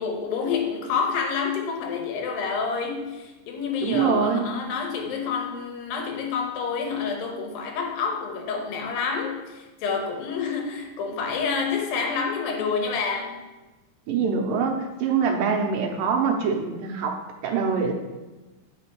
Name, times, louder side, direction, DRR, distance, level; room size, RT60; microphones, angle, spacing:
voice 1, 0.0-13.4, left 5 dB, 90° left, 3 dB, 2.8 m, -28 dB
voice 2, 3.8-4.5 14.1-17.9, right 6 dB, 80° right, 3 dB, 2.5 m, -24 dB
7.8 x 5.1 x 4.5 m, 1.1 s
omnidirectional pair, 4.0 m